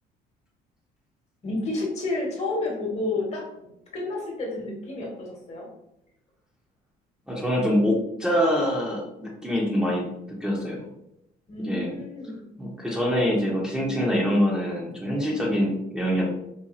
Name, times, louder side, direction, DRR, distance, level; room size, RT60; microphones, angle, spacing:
voice 1, 1.4-5.7 11.5-12.4, left 2 dB, 40° left, -1 dB, 1.1 m, -30 dB
voice 2, 7.3-10.9 11.6-12.0 12.6-16.3, equal, 5° right, -5 dB, 0.7 m, -25 dB
4.1 x 2.3 x 2.5 m, 0.83 s
cardioid pair, 110°, 17 cm